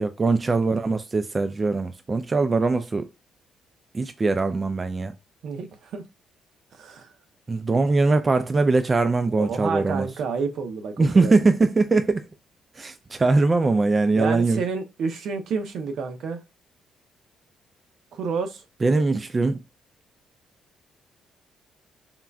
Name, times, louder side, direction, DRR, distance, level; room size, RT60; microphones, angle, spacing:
voice 1, 0.0-3.1 3.9-5.2 7.5-10.1 11.0-12.3 12.8-14.6 18.8-19.6, right 3 dB, 30° right, 0.3 m, -21 dB
voice 2, 5.4-6.0 6.7-7.1 9.3-11.5 14.1-16.4 18.1-18.6, right 5 dB, 70° right, 0.6 m, -30 dB
3.7 x 2.1 x 2.3 m
cardioid pair, 90°, 0 cm